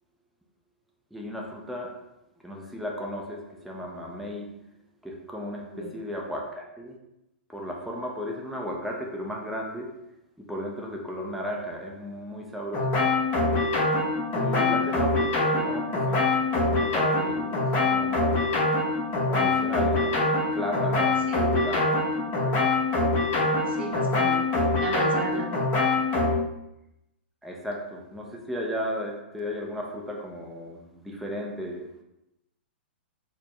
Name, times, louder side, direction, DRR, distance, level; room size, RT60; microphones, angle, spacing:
voice 1, 1.1-1.9 2.4-3.4 3.6-4.5 5.0-6.9 7.5-9.9 10.4-12.9 14.3-16.4 16.7-18.4 19.3-20.2 20.6-22.1 22.5-22.6 27.4-31.8, equal, ahead, -2 dB, 0.5 m, -35 dB
sound 1, 12.7-26.3, left 2 dB, 35° left, 1.0 m, -24 dB
voice 2, 14.5-14.9 21.3-21.4 23.7-24.5 24.8-25.5, right 2 dB, 70° right, 0 dB, 0.8 m, -34 dB
4.1 x 2.1 x 2.9 m, 0.89 s
figure-of-eight pair, 110°, 6 cm